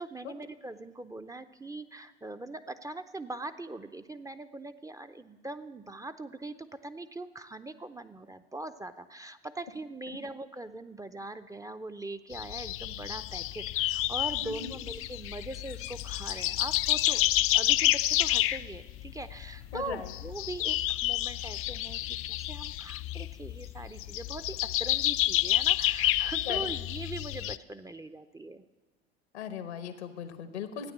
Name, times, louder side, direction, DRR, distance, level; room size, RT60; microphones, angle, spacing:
voice 1, 0.0-17.2 17.5-28.6, right 2 dB, 10° right, 9 dB, 0.5 m, -41 dB
sound 1, 12.3-27.6, left 15 dB, 45° left, 0.4 m, -29 dB
voice 2, 14.4-14.8 19.7-20.1 26.5-26.7 29.3-30.9, left 7 dB, 85° left, 9 dB, 1.3 m, -38 dB
13.0 x 9.3 x 7.3 m, 1.2 s
hypercardioid pair, 70°, 33 cm